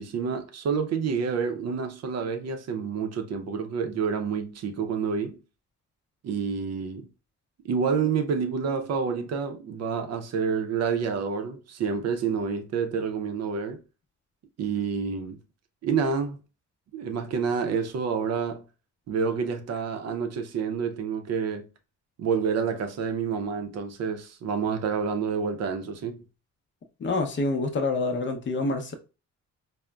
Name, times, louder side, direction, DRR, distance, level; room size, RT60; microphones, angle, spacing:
voice 1, 0.0-5.4 6.2-7.1 7.6-13.8 14.6-15.4 15.8-16.4 16.9-18.6 19.1-21.7 22.2-26.2, right 6 dB, 60° right, 0.5 m, -28 dB
voice 2, 27.0-28.9, left 3 dB, 40° left, 0.6 m, -27 dB
3.7 x 2.0 x 2.2 m
cardioid pair, 90°, 30 cm